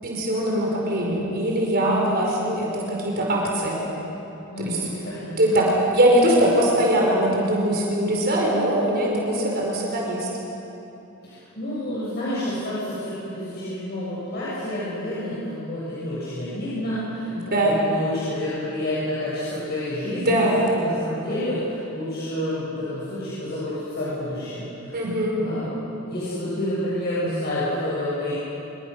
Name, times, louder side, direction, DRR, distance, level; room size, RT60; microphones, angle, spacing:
voice 1, 0.0-3.8 4.6-4.8 5.4-10.3 17.3-17.7 20.1-20.8 24.9-25.4, right 1 dB, 50° right, -2 dB, 5.0 m, -22 dB
voice 2, 1.8-2.2 4.5-5.6 11.2-20.4 20.7-25.0 25.3-28.3, left 1 dB, 50° left, -9 dB, 7.3 m, -29 dB
26.0 x 24.5 x 6.5 m, 3.0 s
head